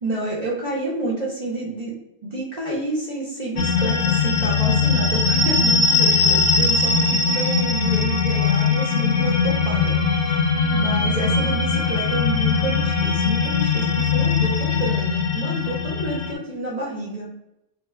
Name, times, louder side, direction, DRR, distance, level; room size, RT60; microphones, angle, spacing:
voice 1, 0.0-2.0 2.2-10.0 10.2-10.4 10.7-17.3, right 2 dB, 45° right, -4 dB, 0.5 m, -29 dB
sound 1, 3.6-16.3, left 4 dB, 65° left, 0.9 m, -20 dB
2.9 x 2.2 x 3.3 m, 0.88 s
omnidirectional pair, 1.5 m